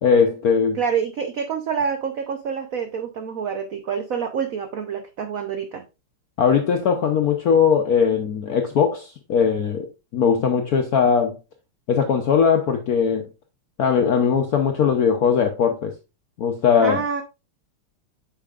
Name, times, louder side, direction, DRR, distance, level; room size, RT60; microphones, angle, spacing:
voice 1, 0.0-0.8 6.4-9.9 10.1-11.4 11.9-13.3 13.8-15.9 16.4-17.0, left 6 dB, 70° left, 0.8 m, -19 dB
voice 2, 0.7-5.8 16.8-17.2, right 6 dB, 80° right, 0.7 m, -27 dB
8.6 x 5.6 x 2.4 m
omnidirectional pair, 2.4 m